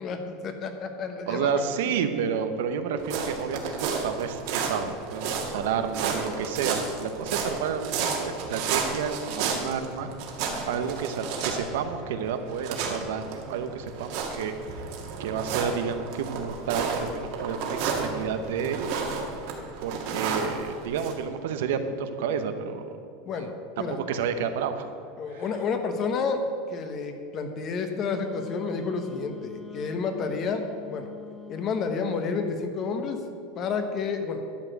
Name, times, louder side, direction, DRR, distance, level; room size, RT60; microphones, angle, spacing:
voice 1, 0.0-1.6 23.3-24.0 25.2-26.4 26.7-30.6 30.9-31.1 31.5-33.2 33.6-34.4, left 5 dB, 35° left, 6 dB, 1.1 m, -30 dB
voice 2, 1.3-10.1 10.7-14.5 15.2-18.9 19.8-23.0 23.4-23.5 23.9-24.9 25.3-25.5, right 7 dB, 80° right, 8 dB, 0.9 m, -30 dB
sound 1, 3.0-21.1, right 5 dB, 60° right, 1.8 m, -32 dB
Wind instrument woodwind instrument, 28.0-32.4, left 6 dB, 10° left, 0.7 m, -45 dB
11.5 x 5.0 x 7.8 m, 2.5 s
supercardioid pair, 150°, 0 cm